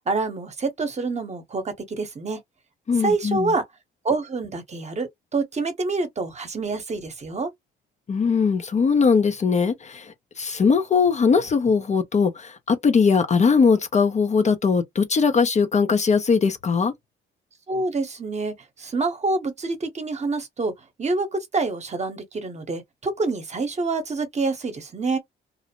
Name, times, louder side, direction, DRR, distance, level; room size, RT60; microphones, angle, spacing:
voice 1, 0.1-2.4 3.0-3.6 4.0-7.5 17.7-20.7 21.0-25.2, right 3 dB, 35° right, 0.9 m, -27 dB
voice 2, 2.9-3.5 8.1-10.1 10.4-16.9, left 5 dB, 35° left, 0.5 m, -20 dB
2.5 x 2.0 x 2.9 m
cardioid pair, 90°, 20 cm